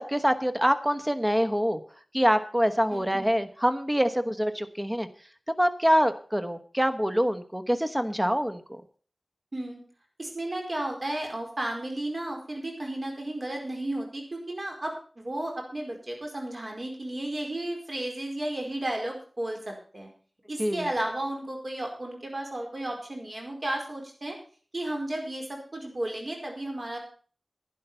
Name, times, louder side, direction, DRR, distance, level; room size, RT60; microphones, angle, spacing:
voice 1, 0.0-1.8 2.1-5.1 5.6-8.8 20.6-20.9, equal, 10° right, 9 dB, 1.2 m, -25 dB
voice 2, 2.9-3.3 9.5-9.8 10.2-20.1 20.5-24.4 24.7-27.0, right 1 dB, 50° right, 2 dB, 4.7 m, -33 dB
11.5 x 10.5 x 5.7 m, 0.43 s
wide cardioid pair, 65°, 0 cm